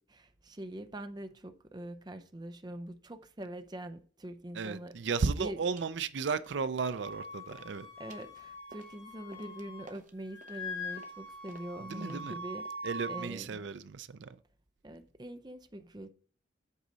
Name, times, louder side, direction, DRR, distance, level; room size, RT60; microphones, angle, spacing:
voice 1, 0.0-5.7 7.5-7.6 8.0-12.7 13.1-13.6 14.8-16.1, right 1 dB, 20° right, 0.6 m, -44 dB
voice 2, 4.5-7.9 11.8-12.4 12.8-14.4, right 5 dB, 70° right, 0.5 m, -34 dB
sound 1, 5.2-5.3 5.8-6.0 6.3-7.2 7.4-13.0, right 2 dB, 40° right, 1.0 m, -56 dB
Wind instrument woodwind instrument, 7.0-9.9 10.2-13.3, left 1 dB, 30° left, 2.5 m, -43 dB
8.2 x 3.9 x 6.2 m
head